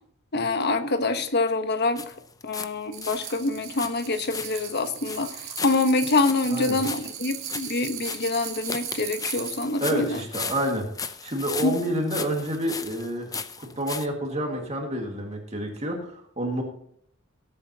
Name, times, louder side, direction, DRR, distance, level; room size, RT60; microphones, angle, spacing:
voice 1, 0.3-2.0 2.4-10.2 11.6-11.8, left 3 dB, 50° left, 9 dB, 1.0 m, -25 dB
sound 1, 2.0-2.7 3.0-14.1, left 5 dB, 15° left, 0.6 m, -37 dB
sound 2, 2.9-9.7, right 10 dB, 70° right, 1.9 m, -38 dB
voice 2, 9.8-16.6, right 1 dB, 30° right, 1 dB, 1.9 m, -29 dB
19.0 x 8.5 x 2.8 m, 0.65 s
head